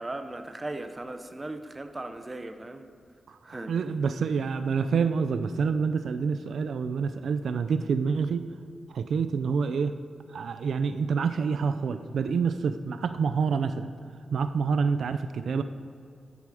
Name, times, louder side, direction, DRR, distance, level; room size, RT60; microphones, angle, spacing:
voice 1, 0.0-2.9 3.4-3.7, right 2 dB, 20° right, 8 dB, 0.8 m, -37 dB
voice 2, 3.3-8.5 8.9-10.0 10.3-13.9 14.3-15.6, right 5 dB, 80° right, 11 dB, 0.5 m, -27 dB
13.5 x 10.5 x 4.9 m, 2.2 s
wide cardioid pair, 115°, 0 cm